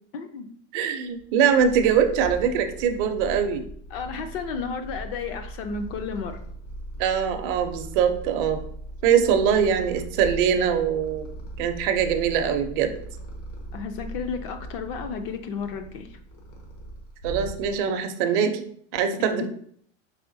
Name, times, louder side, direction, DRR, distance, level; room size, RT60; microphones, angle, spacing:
voice 1, 0.1-0.5 3.9-6.4 13.7-16.2 19.4-19.5, left 5 dB, 50° left, 7 dB, 0.5 m, -32 dB
voice 2, 0.7-3.6 7.0-8.6 9.0-11.3 11.6-12.9 17.2-18.6 18.9-19.5, right 7 dB, 45° right, 7 dB, 0.5 m, -22 dB
Purr, 1.2-18.0, right 1 dB, 85° left, 1.4 m, -39 dB
4.8 x 3.3 x 2.6 m, 0.63 s
supercardioid pair, 160°, 37 cm